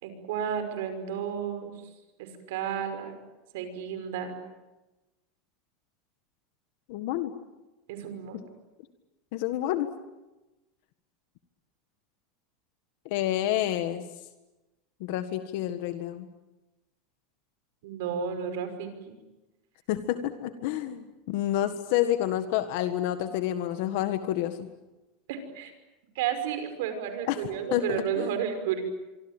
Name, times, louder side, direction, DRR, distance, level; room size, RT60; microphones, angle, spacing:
voice 1, 0.0-1.7 2.2-3.1 3.5-4.3 7.9-8.4 17.8-19.1 25.3-25.7 26.2-28.8, right 8 dB, 70° right, 8 dB, 5.6 m, -32 dB
voice 2, 6.9-7.3 9.3-9.9 13.0-14.0 15.0-16.3 19.9-24.7 27.3-27.4 27.7-28.3, left 12 dB, 55° left, 10 dB, 1.6 m, -29 dB
25.5 x 25.0 x 9.0 m, 1.1 s
supercardioid pair, 175°, 0 cm